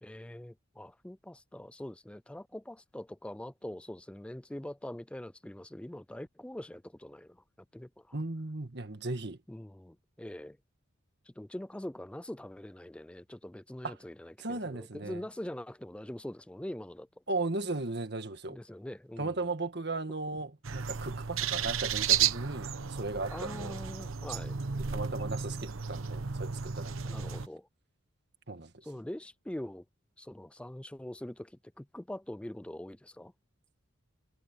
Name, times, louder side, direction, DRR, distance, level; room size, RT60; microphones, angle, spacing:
voice 1, 0.0-7.4 7.7-8.1 9.5-10.6 11.4-17.1 18.5-19.5 23.3-24.5 27.0-27.7 28.8-29.8 30.2-33.3, left 1 dB, 5° left, 0.3 m, -43 dB
voice 2, 8.1-9.4 13.8-14.0 14.4-15.2 17.3-18.6 19.2-23.8 24.9-27.3 28.5-28.7, right 2 dB, 55° right, 1.8 m, -36 dB
sound 1, 20.6-27.5, right 8 dB, 85° right, 1.0 m, -33 dB
head